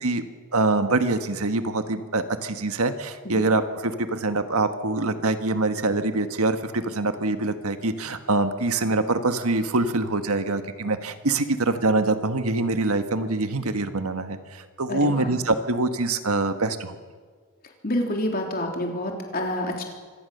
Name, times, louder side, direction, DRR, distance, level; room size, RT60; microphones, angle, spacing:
voice 1, 0.5-17.0, right 2 dB, 80° right, 8 dB, 1.5 m, -24 dB
voice 2, 14.9-15.3 17.8-19.8, left 1 dB, 40° left, 1 dB, 3.4 m, -28 dB
25.5 x 18.0 x 6.8 m, 1.5 s
head